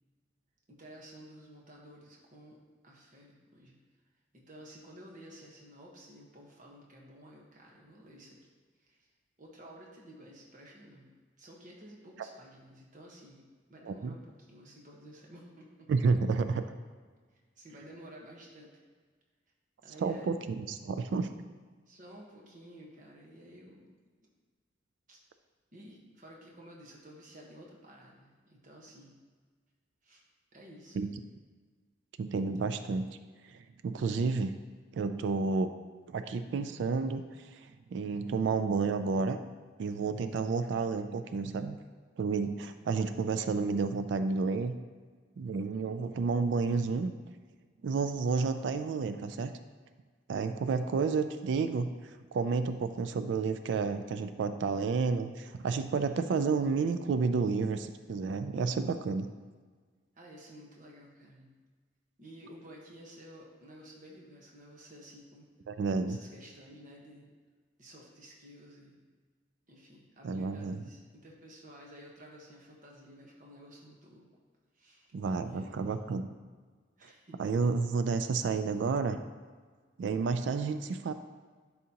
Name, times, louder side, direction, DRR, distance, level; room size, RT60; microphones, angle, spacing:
voice 1, 0.7-2.6 2.8-3.8 4.3-8.4 8.8-9.1 9.4-11.1 11.4-13.4 13.7-15.9 17.6-18.7 19.8-20.3 21.9-23.9 25.1-25.2 25.7-29.2 30.0-30.2 30.5-31.1 60.2-61.5 62.2-65.5 66.1-67.3 67.8-69.0 69.7-74.3 74.7-75.1 75.4-75.8 77.0-77.4, equal, 45° right, -2 dB, 1.2 m, -52 dB
voice 2, 13.9-14.2 15.9-16.6 20.0-21.3 30.9-31.1 32.2-33.1 33.5-34.5 34.9-35.7 36.1-39.4 39.8-41.8 42.2-44.8 45.4-47.1 47.8-49.5 50.3-51.9 52.3-59.3 65.7-66.2 70.2-70.8 75.1-76.3 77.4-79.2 80.0-81.1, right 4 dB, 65° right, 10 dB, 0.3 m, -31 dB
11.0 x 4.1 x 2.9 m, 1.5 s
head